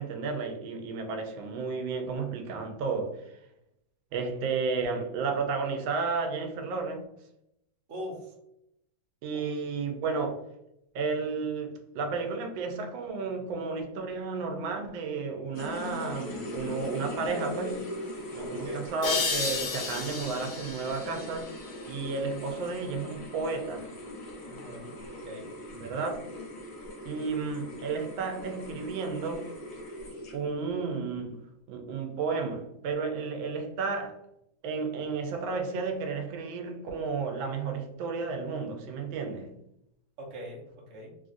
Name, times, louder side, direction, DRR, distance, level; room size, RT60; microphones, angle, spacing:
voice 1, 0.0-3.4 4.1-7.0 9.2-10.4 10.9-17.8 18.3-23.9 25.7-26.2 27.0-29.5 30.3-34.2 34.6-39.5, right 4 dB, 90° right, 1.3 m, -32 dB
voice 2, 7.9-8.3 9.3-9.5 18.6-18.8 24.5-25.5 40.2-41.1, equal, 50° right, 1.0 m, -42 dB
sound 1, 15.5-30.6, left 1 dB, 60° left, 1.3 m, -41 dB
sound 2, 19.0-22.4, left 4 dB, 80° left, 1.4 m, -33 dB
3.3 x 2.4 x 2.5 m
omnidirectional pair, 2.1 m